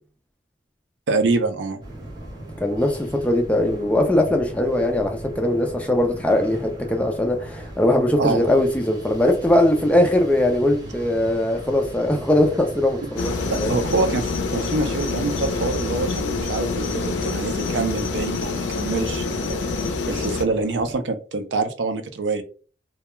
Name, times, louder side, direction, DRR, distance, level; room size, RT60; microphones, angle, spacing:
voice 1, 1.1-1.8 8.2-8.5 13.5-19.6 20.1-22.4, right 3 dB, 75° right, 7 dB, 0.4 m, -25 dB
sound 1, 1.8-21.0, right 1 dB, 20° right, 0.6 m, -38 dB
voice 2, 2.6-13.3 13.6-13.7, left 1 dB, 5° left, 3 dB, 0.3 m, -20 dB
sound 2, 13.2-20.4, left 4 dB, 85° left, 0.4 m, -26 dB
2.2 x 2.1 x 3.0 m, 0.39 s
head